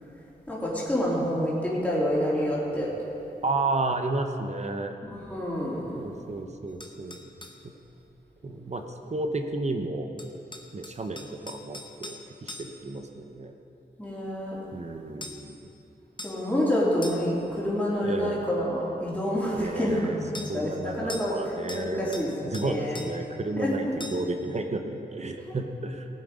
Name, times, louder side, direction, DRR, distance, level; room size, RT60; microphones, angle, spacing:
voice 1, 0.5-2.9 5.0-6.1 14.0-14.6 16.2-21.4 21.7-23.0 23.6-23.9, equal, 10° left, -7 dB, 3.4 m, -28 dB
voice 2, 3.4-5.0 5.9-7.3 8.4-8.8 9.1-10.1 10.7-12.1 12.4-13.5 14.7-15.6 18.0-18.5 19.5-20.2 20.5-22.0 22.5-26.1, right 2 dB, 40° right, 5 dB, 0.8 m, -32 dB
sound 1, 6.8-7.6 10.2-13.0 15.2-15.5 16.2-16.5 17.0-17.4 20.3-20.5 21.1-21.4 21.7-22.3 22.5-23.2 24.0-24.3, left 2 dB, 25° left, 0.9 m, -42 dB
18.5 x 7.8 x 5.0 m, 2.8 s
wide cardioid pair, 130°, 17 cm